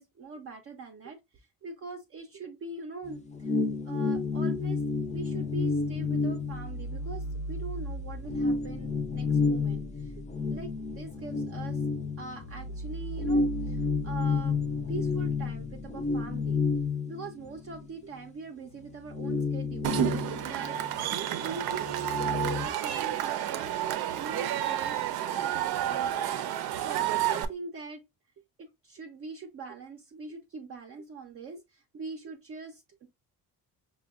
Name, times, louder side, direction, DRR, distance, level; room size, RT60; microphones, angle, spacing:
voice 1, 0.0-3.6 3.8-10.2 10.5-11.8 12.2-14.6 14.9-16.6 17.1-20.8 21.1-26.3 26.7-28.0 28.6-33.1, right 4 dB, 40° right, 0.5 m, -43 dB
sound 1, 3.0-7.4 7.7-7.8 8.3-12.7 13.2-17.9 18.2-18.3 18.7-21.2 21.4-22.7, left 4 dB, 20° left, 0.4 m, -31 dB
sound 2, 4.9-16.9, equal, 80° left, 0.8 m, -41 dB
Cheering / Crowd, 19.8-27.5, right 11 dB, 90° right, 0.5 m, -30 dB
5.1 x 2.2 x 2.2 m
cardioid pair, 120°, 36 cm